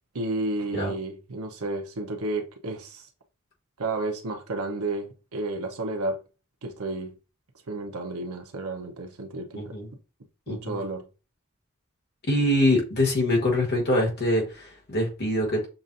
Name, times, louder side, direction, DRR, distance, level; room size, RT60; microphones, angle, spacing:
voice 1, 0.1-3.1 3.8-6.2 6.6-7.1 7.7-9.7 10.5-11.1, right 2 dB, 85° right, 0.9 m, -31 dB
voice 2, 9.5-9.9 10.5-10.8 12.2-15.7, left 1 dB, 45° left, 1.6 m, -24 dB
6.9 x 2.6 x 2.7 m
head